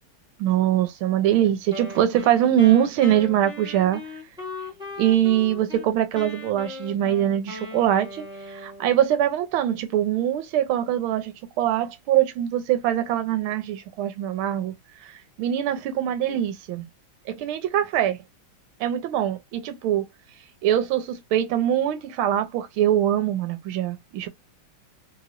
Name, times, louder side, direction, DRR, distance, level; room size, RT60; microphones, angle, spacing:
voice 1, 0.4-4.0 5.0-14.7 15.0-16.9 17.3-18.2 18.8-20.1 20.6-24.3, right 11 dB, 85° right, 1.6 m, -23 dB
Wind instrument woodwind instrument, 1.7-5.9 6.1-9.1, left 2 dB, 5° right, 0.4 m, -38 dB
3.2 x 3.0 x 2.5 m
omnidirectional pair, 2.2 m